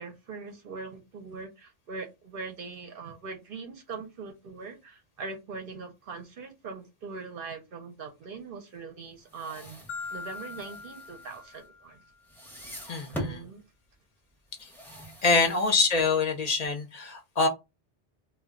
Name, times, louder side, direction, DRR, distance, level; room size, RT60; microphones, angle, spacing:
voice 1, 0.0-9.8 10.1-12.0 13.1-13.6 15.3-15.5, right 4 dB, 60° right, 0.7 m, -41 dB
sound 1, 9.2-11.9 12.2-13.5 14.5-16.4, equal, ahead, 0.6 m, -42 dB
Marimba xylophone, 9.9-12.1, left 4 dB, 90° left, 0.9 m, -41 dB
voice 2, 12.9-13.4 14.6-14.7 15.2-17.5, left 4 dB, 50° left, 0.5 m, -25 dB
2.3 x 2.2 x 3.5 m
omnidirectional pair, 1.2 m